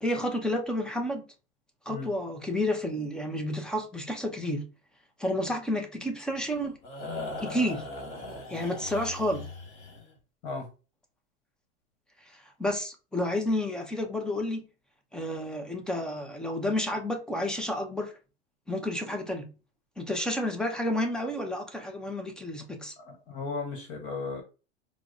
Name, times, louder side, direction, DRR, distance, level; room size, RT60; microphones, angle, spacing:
voice 1, 0.0-1.2 1.9-4.7 5.2-6.8 7.4-7.9 8.5-9.5 12.3-14.6 15.1-18.1 18.7-19.5 20.0-22.9, left 1 dB, ahead, 0.4 m, -30 dB
sound 1, 6.3-10.1, left 2 dB, 35° left, 1.6 m, -39 dB
voice 2, 23.0-24.4, left 4 dB, 55° left, 1.2 m, -35 dB
4.6 x 2.0 x 2.5 m
hypercardioid pair, 120°, 34 cm